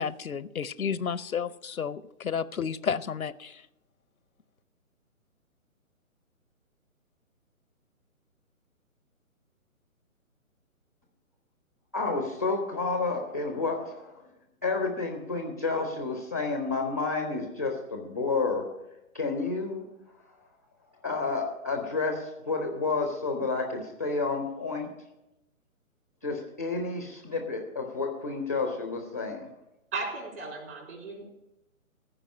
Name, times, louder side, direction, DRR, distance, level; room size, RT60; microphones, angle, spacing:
voice 1, 0.0-3.6, left 7 dB, 75° left, 18 dB, 0.7 m, -32 dB
voice 2, 11.9-14.2 14.6-18.6 19.1-19.8 21.0-24.9 26.2-29.5, left 3 dB, 10° left, 3 dB, 0.5 m, -30 dB
voice 3, 29.9-31.2, right 3 dB, 50° right, 0 dB, 4.0 m, -36 dB
14.5 x 5.0 x 8.3 m, 0.90 s
figure-of-eight pair, 135°, 43 cm